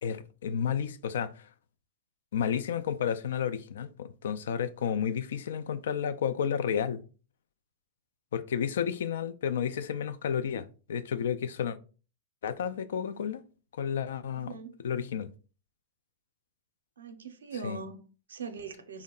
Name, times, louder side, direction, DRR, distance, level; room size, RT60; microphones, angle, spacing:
voice 1, 0.0-1.4 2.3-7.0 8.3-11.8 12.4-13.4 13.8-14.5 14.8-15.3 17.6-17.8, left 8 dB, 75° left, 0.3 m, -31 dB
voice 2, 14.3-14.9 17.0-19.0, right 5 dB, 85° right, 0.5 m, -42 dB
2.8 x 2.1 x 3.7 m
hypercardioid pair, 110°, 0 cm